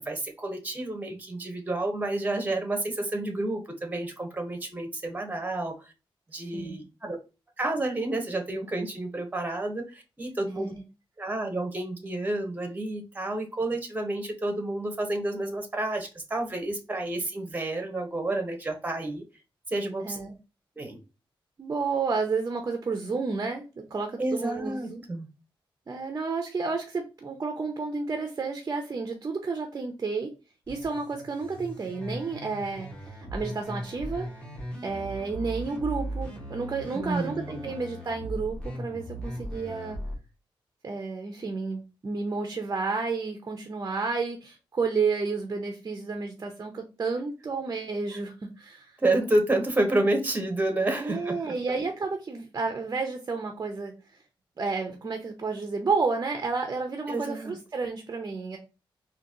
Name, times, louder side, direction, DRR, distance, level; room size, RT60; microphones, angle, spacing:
voice 1, 0.0-5.9 6.3-7.2 7.6-10.7 11.2-19.2 19.7-20.2 20.8-21.0 24.2-25.3 36.9-37.7 49.0-51.5 57.1-57.6, right 2 dB, 20° right, 5 dB, 1.0 m, -30 dB
voice 2, 20.0-20.3 21.6-25.0 25.9-30.3 30.7-32.9 33.3-34.3 34.8-40.0 40.8-48.9 51.0-53.9 54.6-58.6, right 4 dB, 35° right, 4 dB, 0.7 m, -31 dB
sound 1, 30.7-40.2, right 1 dB, 10° left, 1.4 m, -38 dB
4.0 x 2.8 x 2.8 m, 0.30 s
wide cardioid pair, 135°, 9 cm